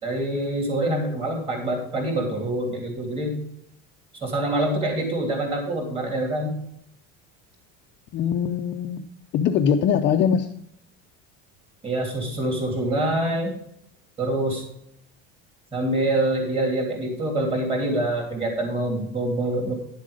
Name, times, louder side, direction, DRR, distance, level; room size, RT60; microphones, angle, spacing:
voice 1, 0.0-3.4 4.2-6.5 11.8-13.5 14.2-14.6 15.7-19.7, right 1 dB, 20° right, 1 dB, 3.2 m, -25 dB
voice 2, 8.1-9.0 9.3-10.5, left 7 dB, 35° left, 5 dB, 0.6 m, -22 dB
10.5 x 7.4 x 5.1 m, 0.73 s
cardioid pair, 165°, 32 cm